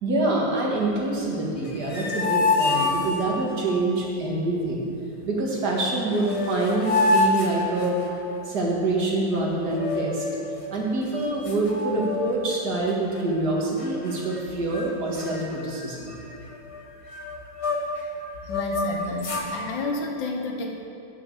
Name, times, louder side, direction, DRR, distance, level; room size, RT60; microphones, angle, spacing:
voice 1, 0.0-4.9 5.2-8.0 8.5-10.3 10.7-16.1, right 2 dB, 55° right, -2 dB, 2.0 m, -26 dB
sound 1, 1.6-3.6 5.8-5.9 6.1-8.4 9.7-10.5 11.1-11.2 11.4-12.6 12.9-13.2 13.8-14.4 14.7-14.9 15.1-18.0 18.4-19.5, left 3 dB, 30° left, 0.6 m, -27 dB
voice 2, 18.4-20.7, left 2 dB, 70° left, 1 dB, 1.8 m, -31 dB
9.1 x 7.2 x 6.5 m, 2.6 s
omnidirectional pair, 2.1 m